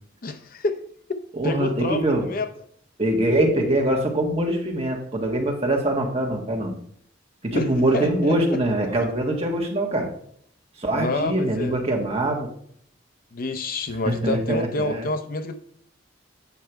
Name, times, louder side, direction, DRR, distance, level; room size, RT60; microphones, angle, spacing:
voice 1, 0.2-0.8 1.4-2.5 7.5-7.7 7.9-8.6 10.9-11.8 13.3-15.5, left 2 dB, 45° left, 9 dB, 0.6 m, -28 dB
voice 2, 1.3-2.3 3.0-6.7 7.4-10.1 10.8-12.5 14.0-15.1, right 1 dB, 30° right, 1 dB, 1.5 m, -23 dB
8.3 x 5.6 x 4.5 m, 0.64 s
head